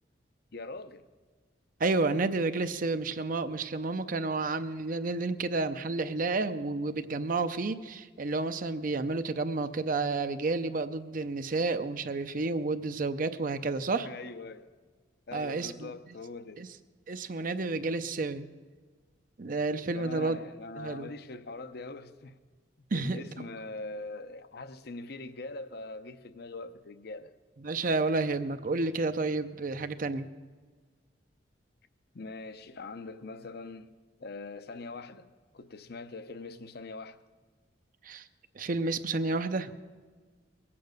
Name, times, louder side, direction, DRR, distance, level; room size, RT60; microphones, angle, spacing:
voice 1, 0.5-1.1 14.1-14.7 15.3-16.7 19.9-22.4 22.9-27.3 32.1-33.9 34.2-35.3 35.5-37.2, left 3 dB, 60° left, 0.7 m, -42 dB
voice 2, 1.8-14.1 15.3-15.9 16.6-16.7 17.1-18.5 19.4-20.4 20.8-21.1 22.9-23.4 27.6-30.3 38.0-38.3 38.5-39.7, right 3 dB, 50° right, 0.6 m, -30 dB
21.5 x 8.6 x 6.5 m
head